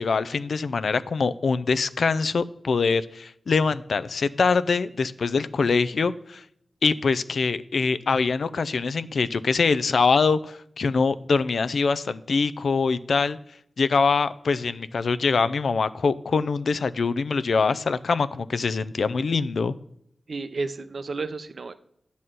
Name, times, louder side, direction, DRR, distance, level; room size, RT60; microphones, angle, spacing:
voice 1, 0.0-6.4 6.8-13.4 13.8-19.7, left 4 dB, 70° left, 14 dB, 0.4 m, -24 dB
voice 2, 20.3-21.7, right 3 dB, 60° right, 12 dB, 0.6 m, -32 dB
11.0 x 4.1 x 7.7 m, 0.72 s
wide cardioid pair, 105°, 0 cm